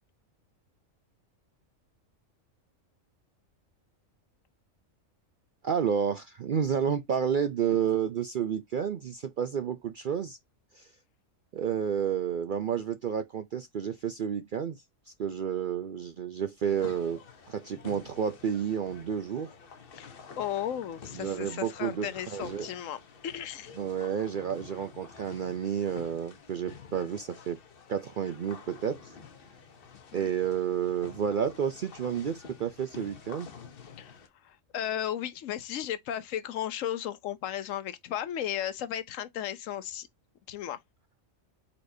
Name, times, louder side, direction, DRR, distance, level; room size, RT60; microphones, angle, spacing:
voice 1, 5.6-10.4 10.7-10.9 11.5-14.8 15.2-17.2 17.5-19.5 21.1-22.7 23.8-27.6 27.9-29.2 30.1-33.5, right 8 dB, 60° right, 0.5 m, -30 dB
sound 1, 16.6-34.3, left 6 dB, 50° left, 0.9 m, -49 dB
voice 2, 19.9-23.7 30.1-30.3 34.0-40.1 40.5-40.8, left 10 dB, 75° left, 1.0 m, -35 dB
4.8 x 4.2 x 2.6 m
omnidirectional pair, 1.4 m